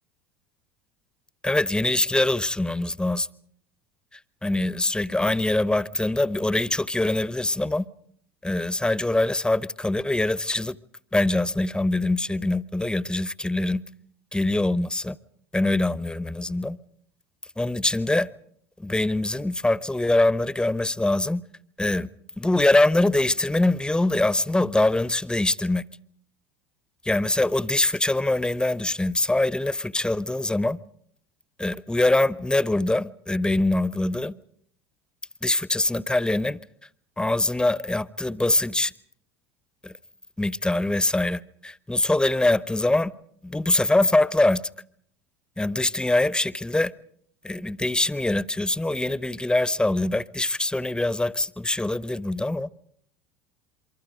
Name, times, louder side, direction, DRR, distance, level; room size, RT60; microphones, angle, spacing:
voice 1, 1.4-3.3 4.4-7.8 8.4-10.8 11.1-13.8 14.3-15.2 15.5-16.8 17.6-18.3 18.8-21.4 21.8-22.1 22.4-25.8 27.0-30.8 31.6-34.3 35.4-36.6 37.2-38.9 39.8-39.9 40.4-43.1 43.4-44.6 45.6-46.9 47.4-52.7, left 2 dB, 5° left, 0.8 m, -23 dB
28.0 x 24.5 x 5.1 m
figure-of-eight pair, 70°, 14 cm